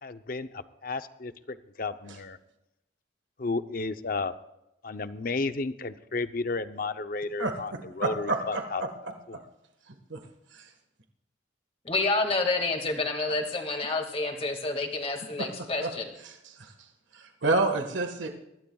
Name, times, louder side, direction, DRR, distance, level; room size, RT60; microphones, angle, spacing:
voice 1, 0.0-2.4 3.4-4.3 4.8-8.8 9.3-9.4, left 3 dB, 50° left, 11 dB, 0.7 m, -33 dB
voice 2, 7.4-8.9 10.1-10.2 10.5-10.6 15.4-15.5 15.8-15.9 16.2-16.7 17.1-18.3, right 2 dB, 90° right, 4 dB, 1.6 m, -29 dB
voice 3, 11.8-16.1, left 3 dB, 30° left, 4 dB, 2.1 m, -29 dB
24.0 x 15.0 x 2.4 m, 0.89 s
head